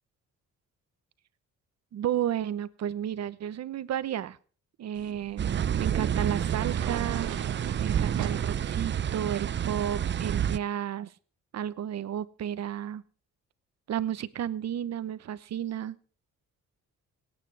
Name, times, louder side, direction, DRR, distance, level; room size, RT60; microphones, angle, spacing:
voice 1, 1.9-4.4 4.8-5.5 5.8-7.3 7.8-11.1 11.5-13.0 13.9-16.0, right 10 dB, 60° right, 15 dB, 0.9 m, -32 dB
sound 1, 4.9-10.4, right 11 dB, 75° right, 1.2 m, -41 dB
sound 2, 5.4-10.6, right 9 dB, 40° right, 0.6 m, -29 dB
25.5 x 9.2 x 3.4 m, 0.42 s
cardioid pair, 90°, 30 cm